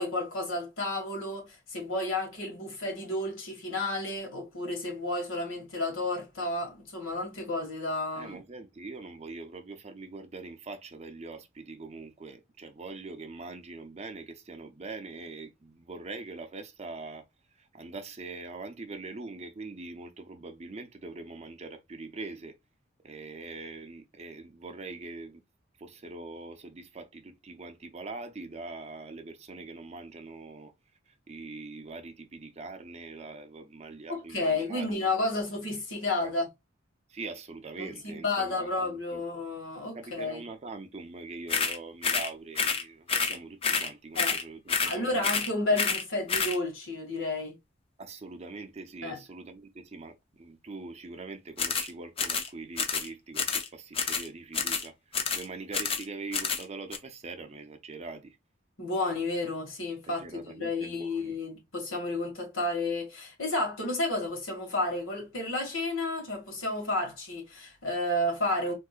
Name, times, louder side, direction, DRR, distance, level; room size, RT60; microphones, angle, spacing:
voice 1, 0.0-8.4 34.1-36.5 37.8-40.4 44.1-44.3 44.8-47.6 49.0-49.2 58.8-68.7, left 2 dB, 90° left, 1.5 m, -31 dB
voice 2, 8.1-17.2 17.6-22.6 23.0-25.4 25.8-30.7 31.1-35.3 36.2-36.3 37.1-39.2 39.9-45.3 45.7-45.8 48.0-58.4 60.1-61.4, right 3 dB, 35° right, 0.6 m, -43 dB
sound 1, 41.5-41.8 42.0-42.3 42.6-42.8 43.1-43.4 43.6-43.9 44.2-44.4 44.7-45.0 45.2-45.5 45.8-46.0 46.3-46.6 51.6-51.9 52.2-52.5 52.8-53.1 53.4-53.7 53.9-54.3 54.5-54.9 55.1-55.4 55.7-56.0 56.3-56.6 56.9-57.0, left 5 dB, 30° left, 0.5 m, -28 dB
3.7 x 2.6 x 2.3 m
head